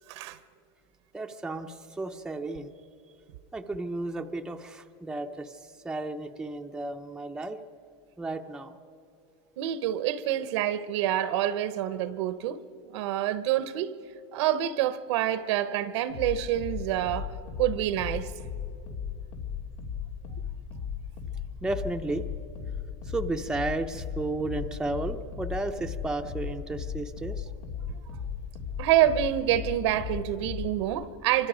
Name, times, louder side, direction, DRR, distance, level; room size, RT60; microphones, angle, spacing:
voice 1, 1.1-2.7 3.5-7.6 8.2-8.8 21.6-22.2 23.0-27.5, right 2 dB, 5° right, 0.7 m, -33 dB
voice 2, 9.6-12.6 12.9-13.9 14.3-17.3 17.6-18.3 27.9-28.0 28.8-31.5, right 12 dB, 70° right, 1.0 m, -27 dB
sound 1, 16.1-30.9, left 7 dB, 85° left, 2.9 m, -37 dB
27.0 x 25.0 x 5.1 m
supercardioid pair, 150°, 15 cm